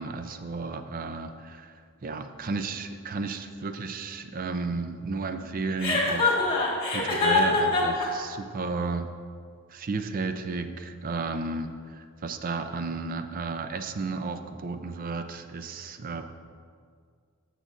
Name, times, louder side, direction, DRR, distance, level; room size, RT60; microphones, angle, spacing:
voice 1, 0.0-1.7 2.0-6.4 6.9-9.1 9.7-16.2, right 4 dB, 40° right, 8 dB, 0.5 m, -33 dB
Chuckle chortle, 5.8-8.1, left 3 dB, 25° left, 1.6 m, -23 dB
13.5 x 6.7 x 2.5 m, 2.1 s
head